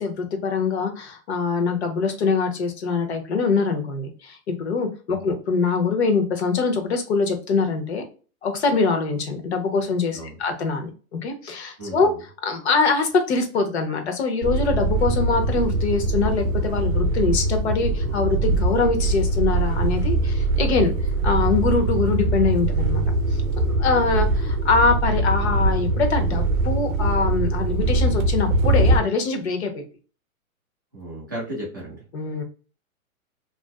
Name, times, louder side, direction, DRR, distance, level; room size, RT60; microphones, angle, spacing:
voice 1, 0.0-8.0 8.4-20.9 21.2-23.0 23.6-29.8 32.1-32.4, left 4 dB, 50° left, 5 dB, 0.7 m, -23 dB
voice 2, 11.8-12.1 30.9-32.0, right 1 dB, 15° right, -8 dB, 0.4 m, -34 dB
sound 1, 14.4-29.0, right 2 dB, 70° right, 0.5 m, -22 dB
2.4 x 2.3 x 2.2 m, 0.37 s
hypercardioid pair, 160°, 43 cm